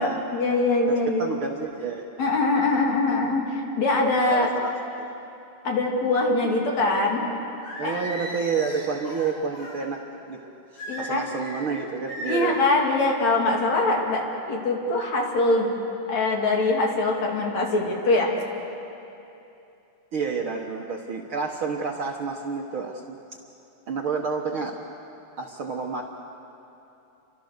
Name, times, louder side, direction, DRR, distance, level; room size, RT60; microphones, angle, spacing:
voice 1, 0.0-1.3 2.2-4.5 5.6-7.3 7.8-8.0 10.9-11.2 12.2-14.2 14.5-15.7 16.1-18.3, left 2 dB, 60° left, 0 dB, 3.9 m, -23 dB
voice 2, 0.9-2.1 4.1-4.7 7.8-10.0 10.3-10.4 10.7-12.6 20.1-23.2 23.9-24.8 25.4-26.0, right 5 dB, 55° right, 1 dB, 1.7 m, -29 dB
Singing, 7.6-9.8 10.8-11.6 12.1-12.6, equal, 80° left, 7.9 m, -36 dB
30.0 x 24.5 x 6.7 m, 2.8 s
omnidirectional pair, 3.6 m